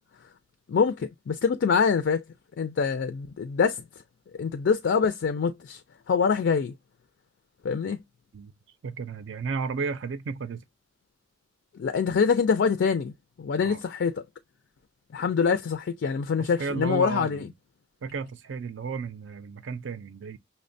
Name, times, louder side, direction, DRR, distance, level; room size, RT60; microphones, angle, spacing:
voice 1, 0.7-2.2 2.6-3.8 4.4-5.8 6.1-6.7 7.6-8.0 11.7-13.1 13.4-14.2 15.1-17.5, left 6 dB, 65° left, 0.4 m, -25 dB
voice 2, 8.8-10.6 13.6-13.8 16.4-17.4 18.0-20.4, right 5 dB, 80° right, 0.4 m, -33 dB
5.6 x 2.1 x 2.6 m
head